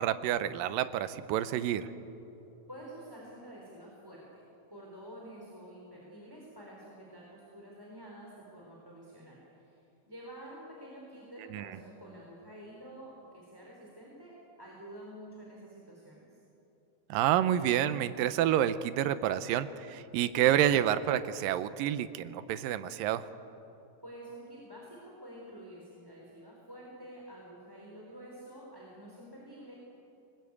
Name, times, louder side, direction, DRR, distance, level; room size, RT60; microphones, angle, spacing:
voice 1, 0.0-1.9 11.5-11.7 17.1-23.3, right 11 dB, 85° right, 13 dB, 2.5 m, -28 dB
voice 2, 2.7-4.4 4.7-9.8 10.1-16.4 24.0-29.7, right 1 dB, 5° right, -3 dB, 3.3 m, -49 dB
25.0 x 19.5 x 8.5 m, 2.9 s
omnidirectional pair, 3.9 m